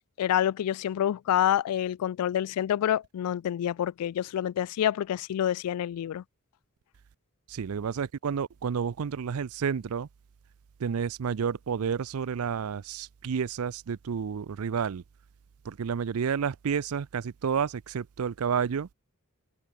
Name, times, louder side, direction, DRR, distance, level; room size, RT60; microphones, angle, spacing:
voice 1, 0.2-6.2, left 10 dB, 80° left, 0.3 m, -27 dB
voice 2, 7.5-10.1 10.8-15.0 15.6-18.9, right 7 dB, 70° right, 0.4 m, -30 dB
head